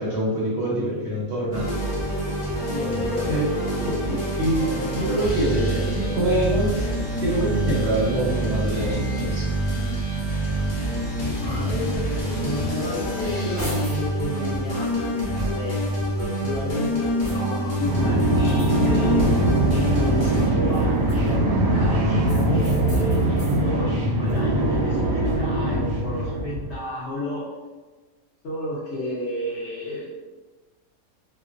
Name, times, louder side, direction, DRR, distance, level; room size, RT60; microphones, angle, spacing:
voice 1, 0.0-1.7 3.2-3.5 4.1-4.7 4.9-5.8 6.1-6.9 7.2-9.4, right 1 dB, 60° right, -7 dB, 0.8 m, -25 dB
sound 1, 1.5-20.5, equal, 80° left, 0.3 m, -26 dB
voice 2, 2.7-4.7 5.8-6.2 10.5-10.9 11.4-19.2 19.7-27.4 28.4-30.1, equal, 60° left, -7 dB, 0.8 m, -32 dB
sound 2, 13.0-14.1 14.6-15.9 16.5-17.7 18.4-19.7 20.6-21.6 22.2-23.6 24.1-25.7, equal, 35° left, 0.9 m, -39 dB
sound 3, 17.8-26.8, right 1 dB, 90° right, 1.1 m, -22 dB
2.5 x 2.0 x 2.4 m, 1.3 s
omnidirectional pair, 1.5 m